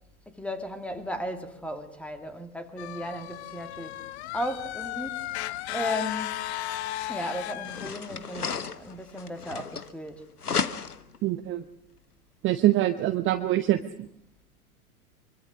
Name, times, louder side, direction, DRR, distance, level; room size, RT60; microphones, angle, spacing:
voice 1, 0.3-4.0 4.3-6.4 7.1-10.2, equal, 5° left, 2.6 m, -35 dB
sound 1, 2.8-7.9, left 14 dB, 45° left, 1.1 m, -35 dB
sound 2, 6.9-7.0 7.6-10.1 10.4-11.2, left 6 dB, 85° left, 1.2 m, -33 dB
voice 2, 11.2-11.6 12.4-14.1, right 14 dB, 25° right, 1.0 m, -24 dB
24.5 x 23.5 x 6.6 m
figure-of-eight pair, 95°, 44 cm